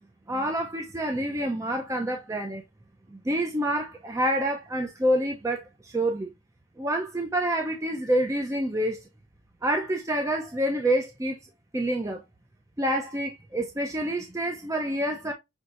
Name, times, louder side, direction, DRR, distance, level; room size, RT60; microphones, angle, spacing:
voice 1, 0.3-2.6 3.1-6.3 6.8-9.0 9.6-11.4 11.7-12.2 12.8-15.3, right 1 dB, 15° right, 0.6 m, -27 dB
6.3 x 3.1 x 2.5 m
head